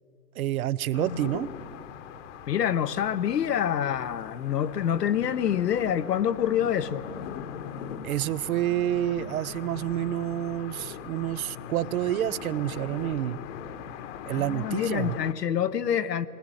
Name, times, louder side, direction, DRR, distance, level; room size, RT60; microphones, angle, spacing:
voice 1, 0.4-1.5 8.0-13.4 14.3-15.2, right 12 dB, 60° right, 0.7 m, -28 dB
sound 1, 0.9-15.3, left 8 dB, 50° left, 1.2 m, -40 dB
voice 2, 2.5-7.0 14.3-16.3, left 9 dB, 80° left, 1.0 m, -26 dB
20.0 x 19.0 x 9.0 m
hypercardioid pair, 125°, 48 cm